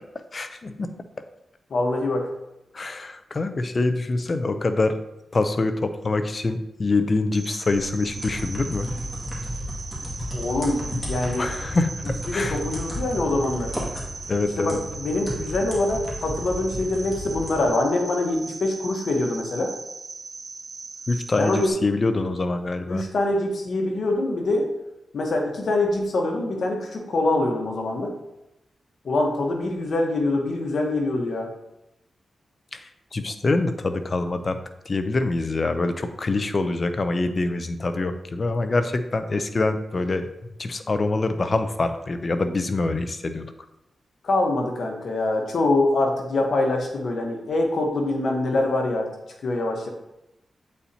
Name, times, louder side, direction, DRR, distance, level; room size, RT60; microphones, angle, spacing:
voice 1, 0.3-0.9 2.7-5.0 5.3-8.9 11.4-12.0 12.3-12.6 14.3-14.8 21.1-23.0 32.7-32.8 33.1-34.6 34.9-40.3 40.6-43.5, left 3 dB, 45° left, 9 dB, 0.6 m, -25 dB
voice 2, 1.7-2.3 10.3-11.5 12.3-13.7 14.6-19.7 21.4-21.7 22.9-24.7 25.1-28.1 29.0-31.5 44.2-49.1 49.4-49.9, left 2 dB, 70° left, 1 dB, 1.2 m, -24 dB
Cricket, 7.3-21.7, right 4 dB, 50° right, 0.4 m, -39 dB
sound 1, 7.6-17.7, equal, 10° left, 2.2 m, -33 dB
8.1 x 4.2 x 2.9 m, 0.89 s
cardioid pair, 60°, 0 cm